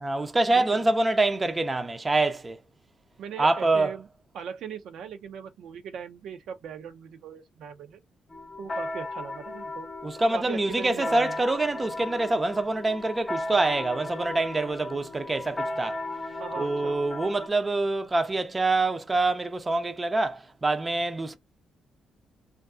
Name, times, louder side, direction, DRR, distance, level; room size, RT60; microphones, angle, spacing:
voice 1, 0.0-2.6 3.4-3.9 10.0-16.0 16.6-21.4, right 2 dB, 20° right, 0.5 m, -25 dB
voice 2, 0.6-0.9 3.2-4.0 4.3-8.0 8.6-9.9 10.3-11.4 16.4-17.0, right 7 dB, 75° right, 0.5 m, -39 dB
sound 1, 8.3-17.5, left 2 dB, 30° left, 0.7 m, -36 dB
2.5 x 2.4 x 2.4 m
cardioid pair, 90°, 0 cm